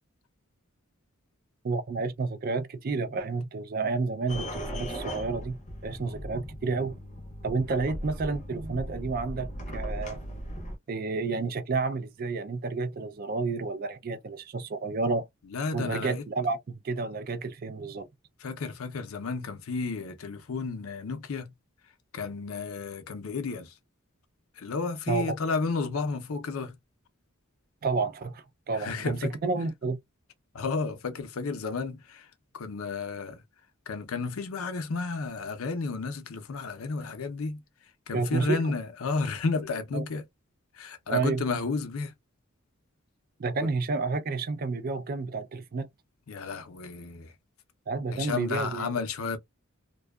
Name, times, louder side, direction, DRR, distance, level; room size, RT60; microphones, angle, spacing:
voice 1, 1.6-6.9 7.4-10.2 10.9-15.2 15.7-18.1 25.1-25.3 27.8-30.0 38.1-38.6 39.9-40.0 41.1-41.4 43.4-45.9 47.9-48.9, right 3 dB, 45° right, 0.4 m, -30 dB
sound 1, 4.3-10.8, equal, 35° left, 0.6 m, -38 dB
voice 2, 15.5-16.2 18.4-21.5 22.1-23.7 24.6-26.8 28.7-29.4 30.5-33.4 33.9-37.6 38.1-40.2 40.7-42.1 43.6-43.7 46.3-47.3 48.1-49.4, left 4 dB, 80° left, 0.5 m, -32 dB
2.6 x 2.2 x 2.2 m
head